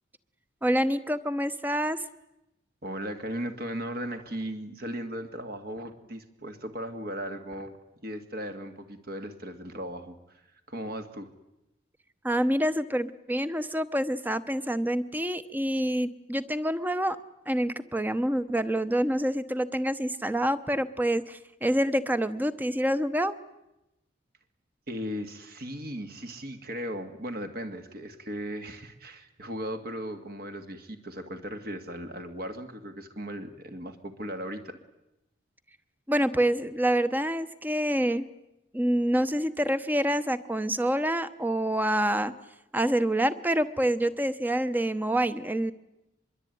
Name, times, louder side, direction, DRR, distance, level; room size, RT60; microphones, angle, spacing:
voice 1, 0.6-2.0 12.2-17.2 17.5-23.3 36.1-38.3 38.7-42.3 42.7-45.7, right 1 dB, 10° right, 13 dB, 0.9 m, -27 dB
voice 2, 2.8-7.7 8.0-11.3 24.9-34.8, equal, 50° right, 7 dB, 2.2 m, -37 dB
25.0 x 22.5 x 9.5 m, 0.93 s
head